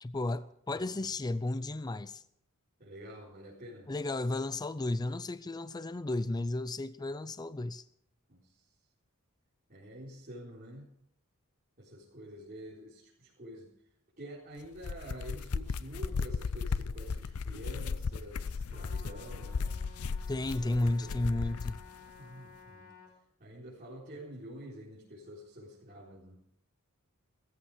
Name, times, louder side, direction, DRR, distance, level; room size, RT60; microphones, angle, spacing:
voice 1, 0.0-2.2 3.9-7.8 20.3-21.8, left 2 dB, 20° left, 0.5 m, -33 dB
voice 2, 2.8-3.9 8.3-8.5 9.7-10.9 11.8-13.7 14.2-19.7 20.6-21.6 22.2-22.9 23.4-26.3, right 1 dB, 40° right, 4.2 m, -48 dB
sound 1, 14.6-21.8, left 5 dB, 85° left, 0.6 m, -36 dB
Trumpet, 18.7-23.1, left 5 dB, 45° left, 5.6 m, -54 dB
17.0 x 14.5 x 4.9 m
head